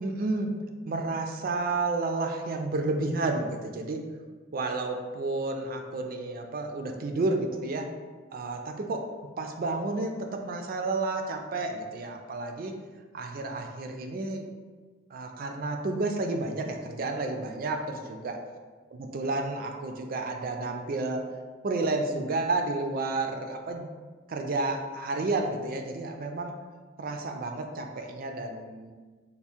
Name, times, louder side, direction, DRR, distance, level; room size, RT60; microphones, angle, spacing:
voice 1, 0.0-0.5 0.9-4.0 4.5-7.9 8.3-9.0 9.4-12.7 13.1-14.5 15.1-18.4 19.0-21.2 21.6-23.9 24.3-26.5 27.0-28.9, right 2 dB, 45° right, 4 dB, 0.3 m, -31 dB
3.5 x 2.1 x 4.2 m, 1.4 s
head